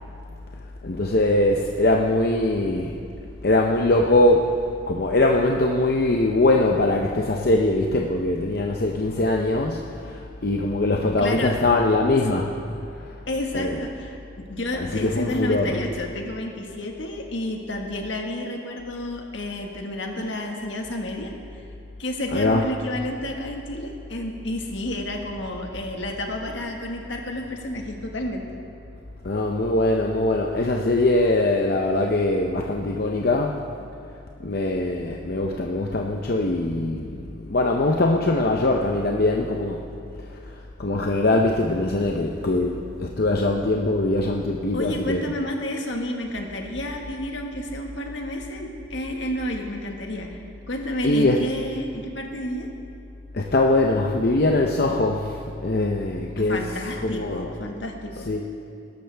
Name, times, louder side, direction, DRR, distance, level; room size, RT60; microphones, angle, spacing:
voice 1, 0.8-2.9 3.4-4.5 4.9-12.5 13.0-13.1 13.5-13.8 14.7-15.8 22.3-22.6 29.2-33.6 34.4-39.8 40.8-45.3 51.0-51.4 53.3-56.6 57.0-57.5 58.3-58.4, left 2 dB, 50° left, 0 dB, 0.7 m, -22 dB
voice 2, 11.2-11.6 13.3-21.6 22.0-28.6 44.7-50.4 50.7-52.7 56.5-58.3, left 1 dB, 70° left, 2 dB, 1.6 m, -30 dB
20.5 x 12.0 x 3.4 m, 2.5 s
head